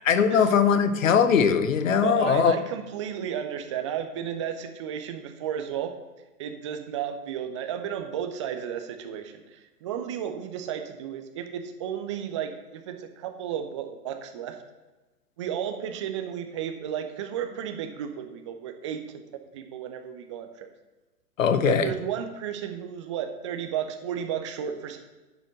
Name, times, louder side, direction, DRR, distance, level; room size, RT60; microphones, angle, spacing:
voice 1, 0.0-2.5 21.4-21.9, left 7 dB, 55° left, 12 dB, 1.0 m, -21 dB
voice 2, 1.9-5.9 6.4-14.6 15.4-19.2 19.5-20.7 21.6-25.0, right 9 dB, 20° right, 6 dB, 0.5 m, -33 dB
10.5 x 5.0 x 6.5 m, 1.1 s
figure-of-eight pair, 115°, 48 cm